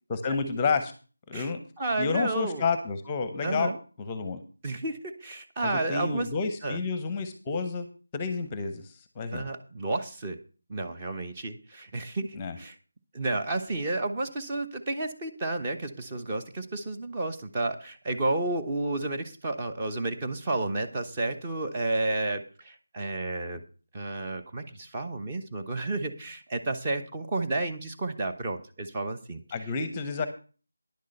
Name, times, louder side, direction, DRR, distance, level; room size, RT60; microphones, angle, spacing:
voice 1, 0.1-0.9 1.3-1.6 2.0-3.7 4.0-4.4 5.6-7.9 8.1-9.5 12.3-12.6 29.5-30.3, left 4 dB, 15° left, 10 dB, 0.9 m, -30 dB
voice 2, 1.8-2.6 3.4-3.8 4.6-6.3 6.6-6.8 9.3-10.4 10.7-12.7 13.1-23.6 23.9-29.4, right 2 dB, 20° right, 4 dB, 1.0 m, -31 dB
10.5 x 6.6 x 6.5 m, 0.36 s
figure-of-eight pair, 170°, 0 cm